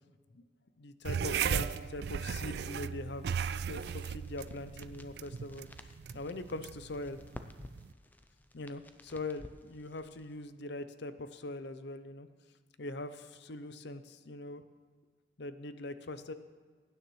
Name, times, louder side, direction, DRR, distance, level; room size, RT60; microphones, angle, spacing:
voice 1, 0.8-5.7 6.1-7.2 8.5-12.3 12.8-14.6 15.4-16.3, left 2 dB, 60° left, 11 dB, 0.6 m, -42 dB
sound 1, 1.0-7.9, right 7 dB, 55° right, 0.3 m, -37 dB
sound 2, 3.8-10.4, left 1 dB, 10° left, 0.4 m, -54 dB
22.0 x 9.7 x 3.1 m, 1.5 s
head